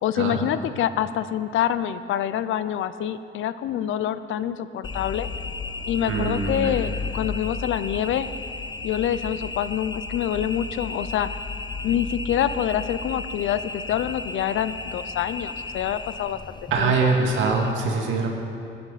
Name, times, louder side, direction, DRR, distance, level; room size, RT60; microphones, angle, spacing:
voice 1, 0.0-5.3 5.9-8.3 8.8-11.3 11.8-16.4 16.8-17.1, left 10 dB, 80° left, 13 dB, 0.6 m, -26 dB
sound 1, 4.8-17.7, left 4 dB, 25° left, 0.6 m, -34 dB
voice 2, 6.1-6.7 16.7-18.3, right 4 dB, 85° right, 1 dB, 2.1 m, -23 dB
18.5 x 11.0 x 4.1 m, 2.5 s
cardioid pair, 90°, 20 cm